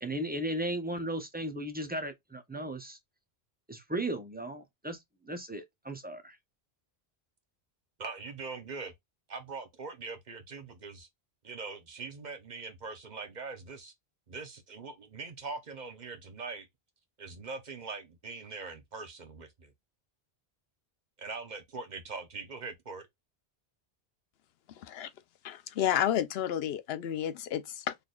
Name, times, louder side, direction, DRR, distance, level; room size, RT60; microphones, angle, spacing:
voice 1, 0.0-3.0 3.7-5.0 5.2-6.4, right 1 dB, 15° right, 0.4 m, -36 dB
voice 2, 8.0-8.9 9.3-11.1 11.4-13.9 14.3-16.7 17.2-19.7 21.2-23.1, right 4 dB, 45° right, 0.8 m, -42 dB
voice 3, 24.7-25.1 25.4-27.9, left 10 dB, 75° left, 0.8 m, -31 dB
4.0 x 3.4 x 2.3 m
omnidirectional pair, 1.1 m